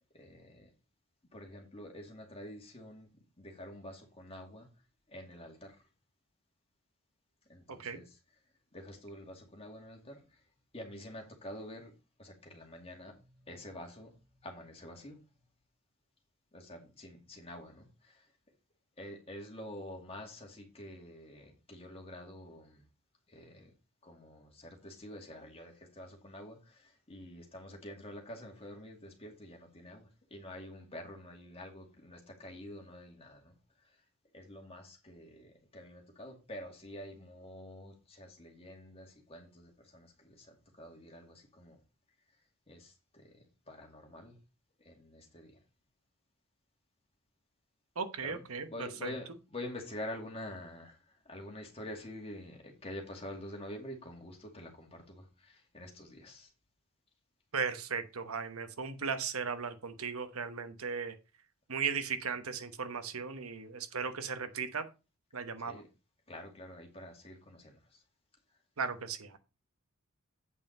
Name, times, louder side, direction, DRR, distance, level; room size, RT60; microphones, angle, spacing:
voice 1, 0.1-0.7 1.3-3.1 3.4-4.7 5.1-5.8 7.5-8.2 8.7-10.2 10.7-11.9 12.2-13.2 13.4-14.1 14.4-15.2 16.5-18.2 19.0-22.8 23.3-23.7 24.0-33.5 34.3-41.8 42.7-44.4 44.8-45.5 48.2-48.4 48.7-51.0 51.3-56.5 65.6-65.9 66.3-67.8, left 1 dB, 30° left, 2 dB, 2.3 m, -47 dB
voice 2, 7.7-8.0 48.0-49.1 57.5-61.1 61.7-64.8 65.3-65.8 68.8-69.4, right 5 dB, 80° right, 10 dB, 1.1 m, -37 dB
8.4 x 5.4 x 5.3 m, 0.30 s
head